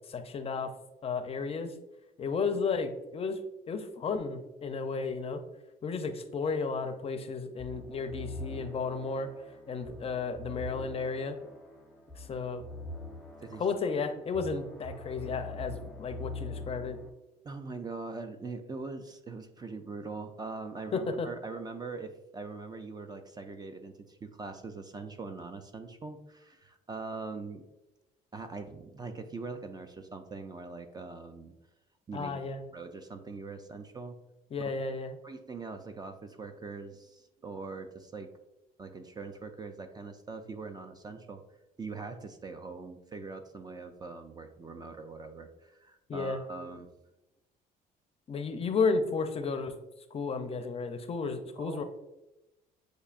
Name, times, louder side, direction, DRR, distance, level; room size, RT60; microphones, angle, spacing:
voice 1, 0.1-0.7 1.0-1.7 2.2-3.4 3.7-5.4 5.8-9.3 9.7-11.4 12.2-12.6 13.6-17.0 20.9-21.3 32.1-32.6 34.5-35.1 46.1-46.4 48.3-49.7 50.1-51.8, left 4 dB, 35° left, 7 dB, 0.5 m, -33 dB
sound 1, 7.6-17.1, left 2 dB, ahead, 0.7 m, -44 dB
voice 2, 17.4-27.7 28.3-31.5 32.1-32.4 32.7-34.2 34.6-34.7 35.2-38.3 38.8-41.4 41.8-46.9 51.6-51.8, right 4 dB, 25° right, 7 dB, 0.4 m, -42 dB
7.9 x 2.7 x 2.4 m, 0.96 s
cardioid pair, 110°, 17 cm